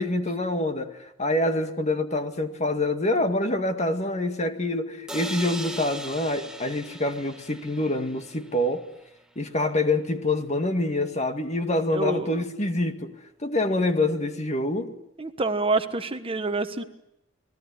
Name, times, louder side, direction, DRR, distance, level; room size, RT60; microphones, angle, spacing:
voice 1, 0.0-8.8 9.4-13.1 13.4-14.9, left 2 dB, 35° left, 2.0 m, -26 dB
sound 1, 5.1-8.9, right 1 dB, 5° right, 1.7 m, -39 dB
voice 2, 11.9-12.4 15.2-16.8, right 3 dB, 30° right, 1.3 m, -27 dB
30.0 x 20.0 x 9.7 m
head